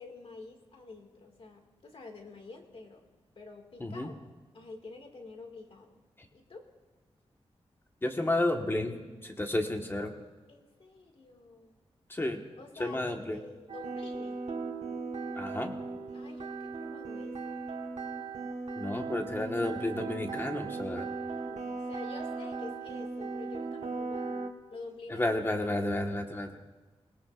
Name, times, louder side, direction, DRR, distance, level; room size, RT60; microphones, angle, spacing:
voice 1, 0.0-3.1 3.4-4.2 4.5-6.0 6.3-6.7 10.5-11.8 12.6-14.4 16.1-17.7 21.3-25.3, left 3 dB, 60° left, 3 dB, 2.1 m, -48 dB
voice 2, 8.0-9.0 9.2-10.1 12.1-12.4 12.8-13.4 15.3-15.7 18.8-21.1 25.1-26.6, left 1 dB, 20° left, 3 dB, 1.5 m, -31 dB
sound 1, 13.7-24.5, right 4 dB, 90° right, 1.5 m, -37 dB
26.5 x 18.5 x 2.5 m, 1.2 s
wide cardioid pair, 105°, 11 cm